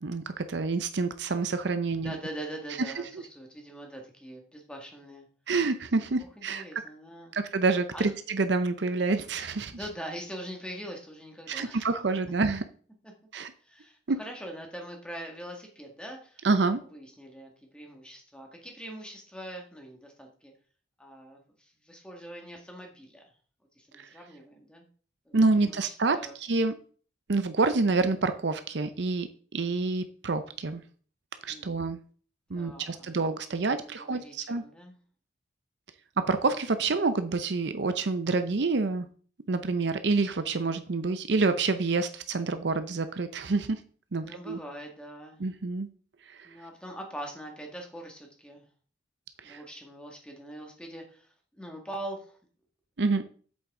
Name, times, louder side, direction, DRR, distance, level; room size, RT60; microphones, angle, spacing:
voice 1, 0.0-2.2 5.5-6.6 7.3-9.7 11.5-12.6 13.3-13.5 14.1-14.2 16.4-16.8 24.0-24.1 25.3-26.7 27.3-29.3 29.5-30.8 31.4-32.0 32.5-34.6 36.2-39.1 39.5-43.8 44.1-44.6 45.4-45.9 46.3-46.5 49.4-49.6 53.0-53.2, right 3 dB, 60° right, 10 dB, 0.6 m, -27 dB
voice 2, 2.0-5.3 6.4-7.4 7.9-8.1 9.7-11.9 13.0-13.1 13.6-16.4 16.9-20.5 21.0-23.2 23.8-24.9 25.3-26.4 31.5-31.7 32.5-33.2 33.7-35.0 44.1-45.4 46.4-48.7 49.4-52.4, right 1 dB, 5° left, 1 dB, 1.8 m, -43 dB
8.0 x 7.9 x 3.7 m, 0.42 s
head